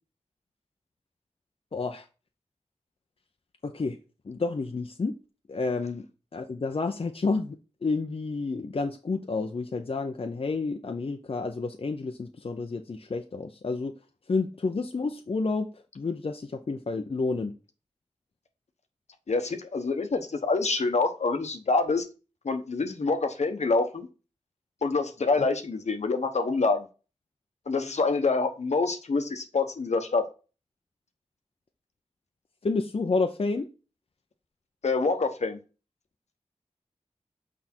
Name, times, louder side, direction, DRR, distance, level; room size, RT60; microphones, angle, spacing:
voice 1, 1.7-2.0 3.6-4.0 4.3-5.1 5.5-6.1 6.3-13.9 14.3-17.5 32.6-33.7, left 3 dB, 55° left, 4 dB, 0.7 m, -30 dB
voice 2, 19.3-22.0 22.4-24.1 24.8-26.9 27.7-30.2 34.8-35.6, left 3 dB, 70° left, 7 dB, 1.1 m, -26 dB
6.1 x 5.0 x 4.4 m, 0.34 s
wide cardioid pair, 55°, 12 cm